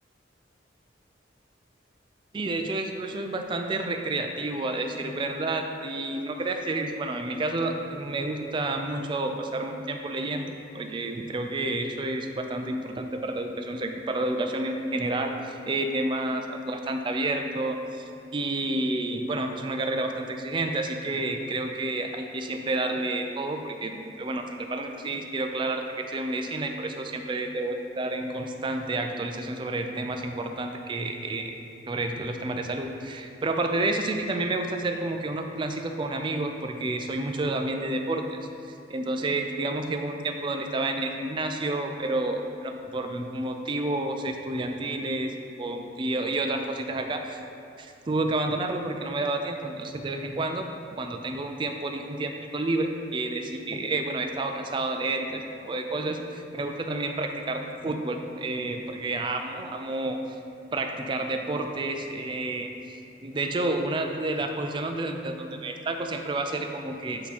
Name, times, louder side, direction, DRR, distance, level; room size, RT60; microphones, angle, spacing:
voice 1, 2.3-31.5 31.9-38.4 38.7-47.4 47.8-50.7 51.0-60.4 60.7-67.3, right 2 dB, 25° right, 5 dB, 0.3 m, -30 dB
8.0 x 2.8 x 4.1 m, 2.7 s
head